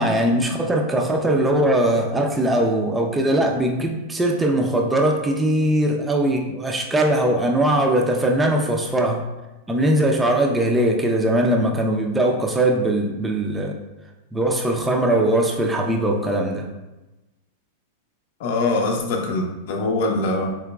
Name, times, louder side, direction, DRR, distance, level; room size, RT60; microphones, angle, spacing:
voice 1, 0.0-9.2 9.7-13.8 14.3-16.7, right 1 dB, 10° right, 1 dB, 0.4 m, -20 dB
voice 2, 18.4-20.5, left 2 dB, 60° left, 2 dB, 0.6 m, -23 dB
3.6 x 2.9 x 2.3 m, 1.0 s
hypercardioid pair, 120°, 0 cm